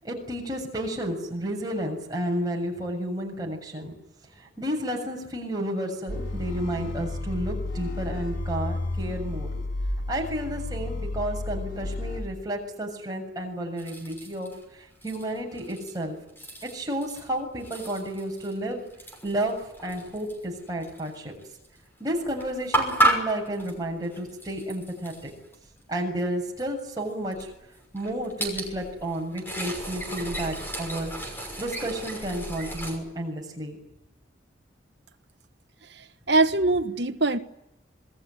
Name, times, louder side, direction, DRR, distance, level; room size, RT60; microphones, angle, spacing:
voice 1, 0.0-3.9 4.4-9.8 10.1-16.2 16.6-18.8 19.2-21.3 22.0-25.3 25.9-27.5 27.9-31.1 31.6-33.8, right 1 dB, 20° right, 7.3 m, -31 dB
sound 1, 6.1-12.2, left 2 dB, 75° left, 4.9 m, -32 dB
sound 2, 13.8-14.6 15.0-16.0 16.3-17.3 17.6-21.1 21.4-21.7 22.1-25.7 26.2-26.3 26.6-26.7 27.2-33.0, right 1 dB, 10° left, 6.2 m, -32 dB
voice 2, 35.9-37.4, right 2 dB, 60° right, 1.4 m, -23 dB
26.5 x 21.5 x 9.9 m
head